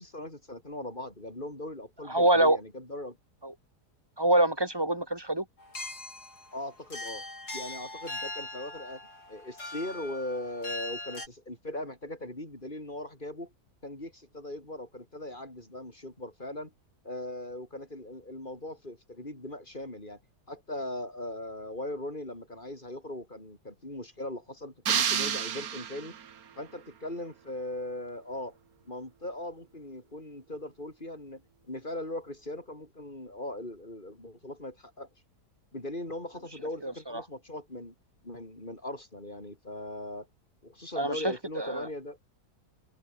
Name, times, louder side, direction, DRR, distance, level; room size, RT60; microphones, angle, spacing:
voice 1, 0.0-3.2 6.5-7.2 7.5-9.0 9.3-13.5 13.8-16.7 17.0-20.2 20.5-26.1 26.6-28.6 28.8-31.4 31.7-35.1 35.7-37.9 38.2-40.3 40.6-42.2, left 1 dB, 30° left, 6.7 m, -39 dB
voice 2, 2.1-2.6 3.4-3.5 4.2-5.4 36.8-37.2 41.0-41.2 41.6-41.9, right 1 dB, 15° right, 3.2 m, -25 dB
sound 1, 5.6-11.3, left 2 dB, 65° left, 8.8 m, -40 dB
sound 2, 24.9-26.4, right 8 dB, 60° right, 1.7 m, -29 dB
omnidirectional pair, 1.8 m